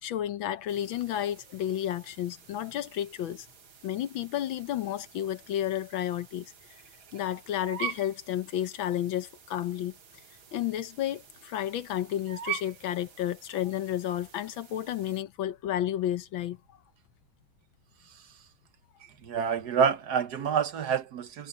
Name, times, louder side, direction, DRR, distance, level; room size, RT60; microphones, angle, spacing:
voice 1, 0.0-3.5 3.8-6.5 7.1-9.9 10.5-16.6, left 11 dB, 80° left, 1.7 m, -32 dB
sound 1, 0.7-15.2, right 8 dB, 85° right, 2.7 m, -45 dB
voice 2, 19.2-21.5, right 7 dB, 60° right, 1.3 m, -27 dB
omnidirectional pair, 2.2 m